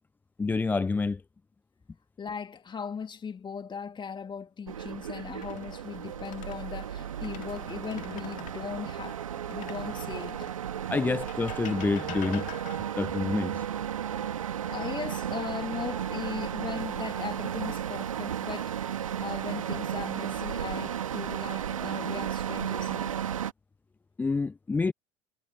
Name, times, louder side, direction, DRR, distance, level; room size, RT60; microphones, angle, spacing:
voice 1, 0.4-1.2 10.9-12.5 13.0-13.7 24.2-24.9, left 4 dB, 10° left, 0.3 m, -28 dB
voice 2, 2.2-10.5 14.7-23.2, left 6 dB, 25° left, 2.4 m, -38 dB
sound 1, 4.7-23.5, right 9 dB, 80° right, 1.8 m, -34 dB
sound 2, 5.3-6.6 7.1-8.6 9.5-10.6 11.3-13.1 15.0-15.7 16.1-16.3 19.2-19.8 20.5-21.2, left 15 dB, 50° left, 2.2 m, -47 dB
figure-of-eight pair, 65°, 17 cm